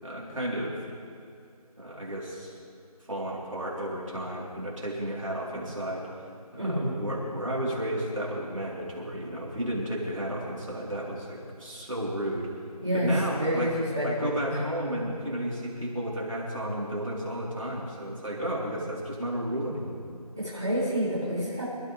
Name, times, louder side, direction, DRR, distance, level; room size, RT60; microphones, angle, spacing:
voice 1, 0.0-0.7 1.8-2.6 3.1-6.0 6.5-12.5 12.9-13.7 14.0-20.0, right 1 dB, 50° right, -5 dB, 4.4 m, -33 dB
voice 2, 6.6-7.0 12.8-14.6 20.4-21.6, equal, 5° right, -13 dB, 1.3 m, -28 dB
25.5 x 13.5 x 3.6 m, 2.5 s
figure-of-eight pair, 175°, 20 cm